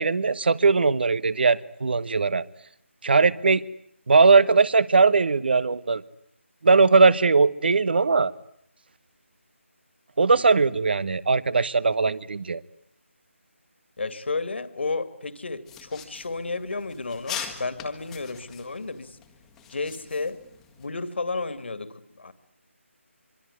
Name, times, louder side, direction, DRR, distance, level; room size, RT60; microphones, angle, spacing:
voice 1, 0.0-2.4 3.0-3.6 4.1-6.0 6.6-8.3 10.2-12.6, right 4 dB, 50° right, 19 dB, 1.1 m, -19 dB
voice 2, 14.0-19.2 19.7-20.4 20.8-22.3, left 3 dB, 55° left, 12 dB, 2.3 m, -32 dB
sound 1, 15.7-20.9, left 8 dB, 5° left, 1.7 m, -41 dB
25.0 x 24.5 x 9.7 m, 0.71 s
figure-of-eight pair, 160°, 7 cm